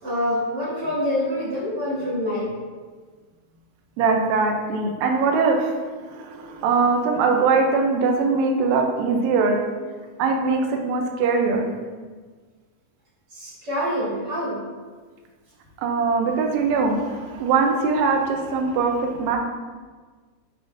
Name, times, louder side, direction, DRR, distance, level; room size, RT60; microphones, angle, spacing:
voice 1, 0.0-2.5 13.3-14.6 16.9-17.0, left 1 dB, 45° right, -7 dB, 1.5 m, -26 dB
voice 2, 4.0-9.6 10.2-11.7 15.8-19.4, right 4 dB, 75° right, 2 dB, 1.8 m, -21 dB
7.0 x 5.3 x 2.5 m, 1.4 s
omnidirectional pair, 3.5 m